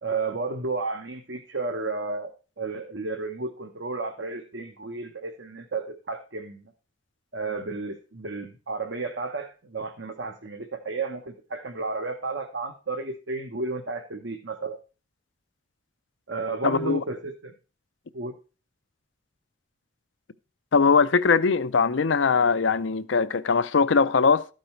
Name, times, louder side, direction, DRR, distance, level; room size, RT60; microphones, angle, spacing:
voice 1, 0.0-6.7 7.3-14.8 16.3-17.5 18.1-18.3, right 3 dB, 80° right, 1.1 m, -32 dB
voice 2, 16.6-17.0 20.7-24.5, left 5 dB, 85° left, 0.6 m, -21 dB
13.0 x 5.3 x 4.4 m
head